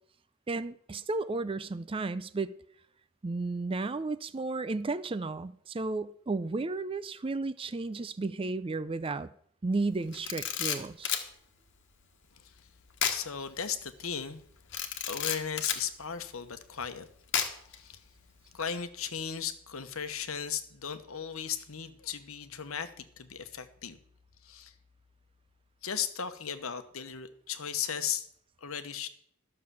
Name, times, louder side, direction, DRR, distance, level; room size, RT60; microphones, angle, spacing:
voice 1, 0.5-2.5 3.2-9.3 9.6-11.1, right 3 dB, 25° right, 0.4 m, -33 dB
Camera, 10.1-11.3 13.0-13.2 13.6-13.7 14.7-15.8 17.3-17.8, left 8 dB, 55° left, 1.3 m, -31 dB
voice 2, 13.1-14.4 15.1-17.1 17.7-18.0 18.5-24.0 24.4-24.7 25.8-28.3 28.6-29.1, left 8 dB, 75° left, 1.1 m, -36 dB
12.5 x 6.7 x 6.9 m
head